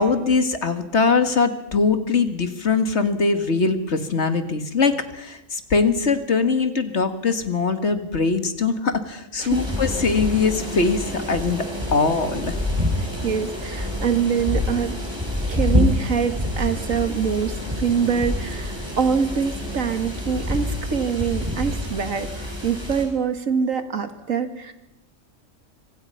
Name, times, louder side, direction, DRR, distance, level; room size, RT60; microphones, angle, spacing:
voice 1, 0.0-12.6, left 4 dB, 60° left, 8 dB, 2.1 m, -22 dB
sound 1, 9.5-23.0, left 1 dB, 20° right, 6.4 m, -27 dB
voice 2, 13.2-15.0 15.5-24.7, right 6 dB, 90° right, 8 dB, 2.2 m, -24 dB
26.0 x 25.5 x 5.7 m, 0.90 s
omnidirectional pair, 1.3 m